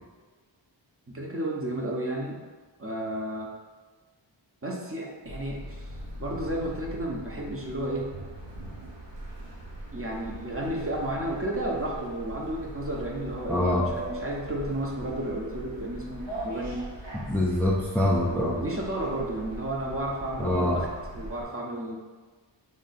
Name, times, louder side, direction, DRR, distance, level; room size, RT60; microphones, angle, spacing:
voice 1, 1.1-2.4 2.8-3.5 4.6-5.9 6.2-8.1 9.9-16.9 18.3-22.0, right 1 dB, 30° right, -2 dB, 0.7 m, -32 dB
sound 1, 5.2-21.4, right 1 dB, 70° right, 1.0 m, -41 dB
voice 2, 13.5-13.9 17.3-18.6 20.4-20.8, left 1 dB, 5° left, -3 dB, 0.4 m, -24 dB
3.2 x 2.7 x 4.0 m, 1.4 s
wide cardioid pair, 75°, 45 cm